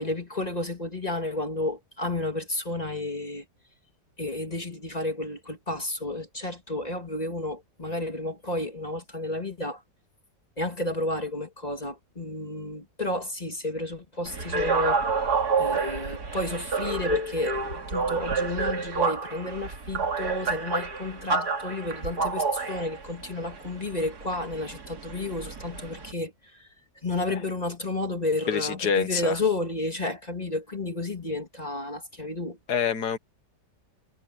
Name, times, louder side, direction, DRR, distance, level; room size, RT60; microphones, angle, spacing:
voice 1, 0.0-3.4 4.2-9.8 10.6-15.0 15.6-17.6 17.9-26.7 27.0-32.6, left 2 dB, 25° left, 1.9 m, -31 dB
sound 1, 14.2-26.1, right 4 dB, 60° right, 2.9 m, -29 dB
voice 2, 28.5-29.4 32.7-33.2, left 7 dB, 65° left, 1.7 m, -26 dB
omnidirectional pair, 1.9 m